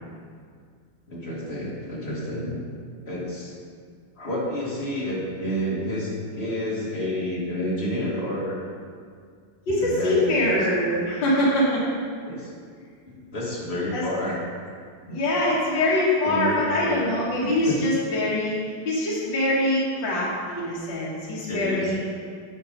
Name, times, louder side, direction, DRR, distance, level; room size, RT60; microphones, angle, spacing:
voice 1, 1.1-2.6 3.0-3.5 4.2-8.6 9.7-10.7 12.3-12.5 13.1-14.4 15.1-15.2 16.2-17.1 17.4-17.8 21.5-22.0, equal, 30° left, -5 dB, 1.9 m, -30 dB
voice 2, 9.7-11.8 13.9-14.0 15.1-18.5 18.9-22.0, left 1 dB, 65° left, -7 dB, 2.4 m, -23 dB
10.5 x 4.7 x 5.2 m, 2.1 s
omnidirectional pair, 2.2 m